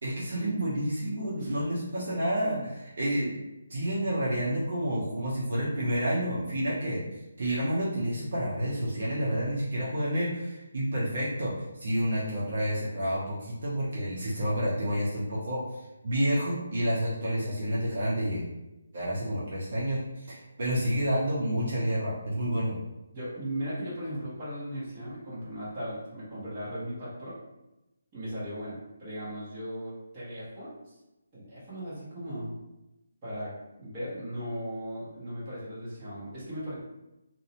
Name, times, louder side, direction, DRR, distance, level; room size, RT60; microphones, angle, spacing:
voice 1, 0.0-3.4 3.7-7.0 7.4-11.5 11.8-18.4 18.9-22.8, equal, 50° right, -6 dB, 0.6 m, -29 dB
voice 2, 23.1-27.4 28.1-30.9 31.3-32.5 33.2-36.8, equal, 20° right, -10 dB, 0.9 m, -37 dB
2.6 x 2.0 x 2.8 m, 0.96 s
hypercardioid pair, 175°, 0 cm